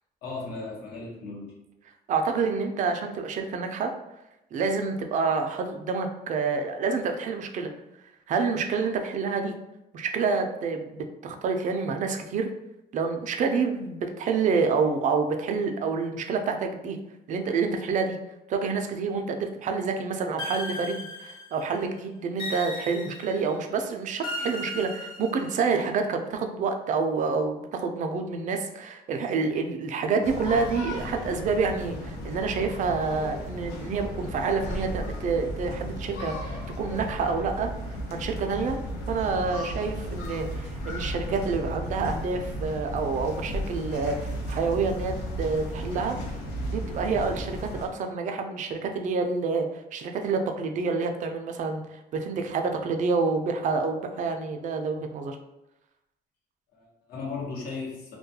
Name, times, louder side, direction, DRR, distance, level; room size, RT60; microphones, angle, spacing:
voice 1, 0.2-1.6 56.7-58.2, left 4 dB, 65° left, -4 dB, 0.9 m, -36 dB
voice 2, 2.1-3.9 4.5-7.7 8.3-9.5 9.9-12.5 12.9-17.0 17.3-18.2 18.5-37.7 38.1-38.8 39.1-46.2 46.7-55.4, right 4 dB, 50° right, 5 dB, 0.4 m, -28 dB
sound 1, 20.4-21.7 22.4-23.5 24.2-25.7, left 1 dB, 25° left, 1.0 m, -36 dB
sound 2, 30.2-47.9, equal, 85° left, 0.6 m, -35 dB
2.3 x 2.2 x 2.7 m, 0.91 s
cardioid pair, 110°, 17 cm